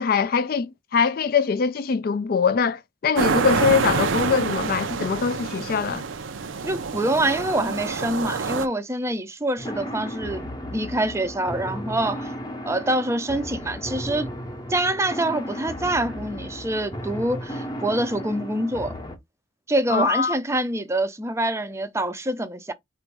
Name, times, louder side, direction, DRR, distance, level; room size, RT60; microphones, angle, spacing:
voice 1, 0.0-6.0 19.9-20.4, left 6 dB, 50° left, 0.4 m, -22 dB
sound 1, 3.2-8.7, right 5 dB, 85° right, 0.6 m, -27 dB
voice 2, 6.6-12.3 12.6-14.3 14.7-19.0 19.7-22.7, right 1 dB, 15° right, 0.5 m, -25 dB
sound 2, 9.6-19.2, equal, 20° left, 0.7 m, -34 dB
4.3 x 2.5 x 4.6 m
head